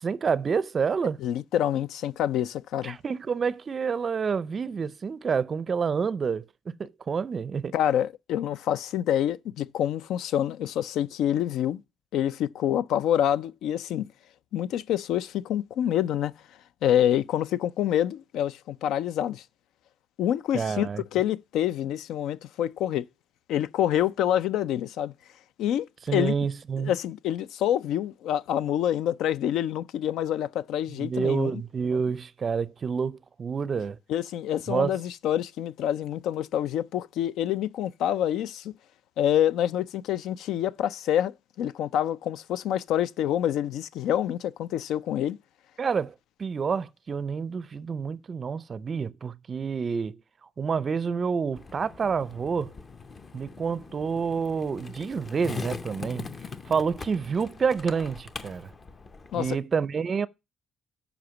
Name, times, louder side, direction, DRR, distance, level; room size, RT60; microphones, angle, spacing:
voice 1, 0.0-1.2 2.8-7.7 20.5-21.0 26.1-26.9 31.0-34.0 34.7-34.9 45.8-46.1 46.4-50.2 50.6-52.7 53.3-56.3 56.7-58.7 59.3-60.3, right 6 dB, 35° right, 0.4 m, -28 dB
voice 2, 1.2-3.0 7.7-11.8 12.1-14.1 14.5-16.3 16.8-19.4 20.2-23.0 23.5-25.1 25.6-25.9 26.1-26.3 26.8-31.6 34.1-38.7 39.2-45.4 59.3-59.6, left 11 dB, 80° left, 0.4 m, -27 dB
Skateboard, 51.6-59.6, left 4 dB, 30° left, 0.6 m, -41 dB
7.9 x 5.1 x 6.9 m
cardioid pair, 135°, 0 cm